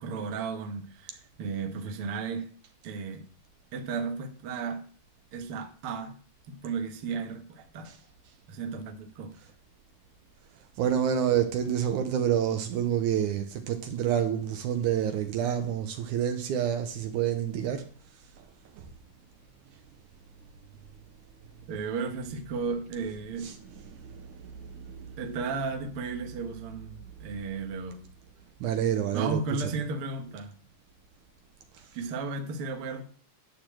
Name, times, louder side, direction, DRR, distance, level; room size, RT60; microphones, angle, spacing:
voice 1, 0.0-2.5 2.8-3.2 3.7-4.8 5.3-6.1 6.5-7.9 8.5-9.4 21.7-23.5 25.2-28.0 29.1-30.6 31.9-33.0, right 4 dB, 55° right, 1.8 m, -34 dB
voice 2, 10.8-17.9 18.8-18.9 23.0-25.4 28.6-29.7, right 9 dB, 75° right, 2.2 m, -29 dB
11.5 x 4.1 x 7.6 m
omnidirectional pair, 3.7 m